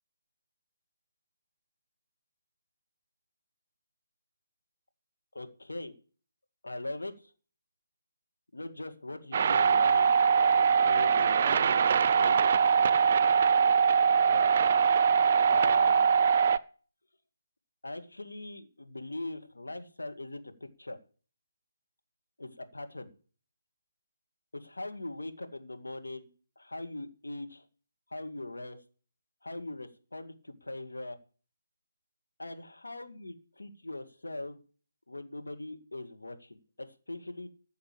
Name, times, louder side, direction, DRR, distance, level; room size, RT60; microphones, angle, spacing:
voice 1, 5.3-6.0 6.6-7.1 8.5-12.5 14.2-14.5 15.5-16.1 17.8-21.0 22.4-23.1 24.5-26.3 26.6-27.7 28.1-28.8 29.4-31.2 32.4-34.6 35.1-37.5, left 2 dB, 70° left, 6 dB, 2.2 m, -41 dB
sound 1, 9.3-16.6, right 6 dB, 35° right, 0.6 m, -23 dB
14.5 x 6.7 x 8.5 m, 0.42 s
figure-of-eight pair, 145°, 0 cm